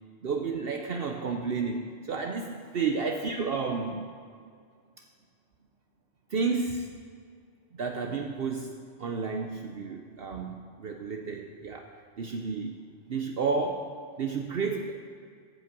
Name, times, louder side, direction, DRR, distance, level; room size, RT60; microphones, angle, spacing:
voice 1, 0.2-4.1 6.3-6.9 7.7-11.9 12.2-12.8 13.1-14.9, right 4 dB, 60° right, 3 dB, 0.9 m, -31 dB
10.5 x 8.5 x 7.4 m, 2.1 s
omnidirectional pair, 1.2 m